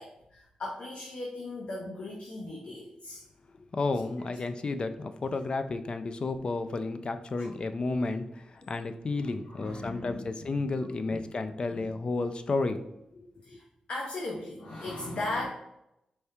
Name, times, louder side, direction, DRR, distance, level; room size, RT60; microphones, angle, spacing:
voice 1, 0.0-3.2 7.4-7.5 8.6-8.7 9.2-10.3 10.6-10.7 11.1-11.2 11.7-11.9 13.4-13.6 13.9-15.5, left 2 dB, 60° left, -2 dB, 0.7 m, -38 dB
voice 2, 3.7-12.8 13.1-13.6, left 3 dB, 45° left, 9 dB, 0.4 m, -32 dB
4.4 x 3.5 x 2.7 m, 0.84 s
wide cardioid pair, 105°, 2 cm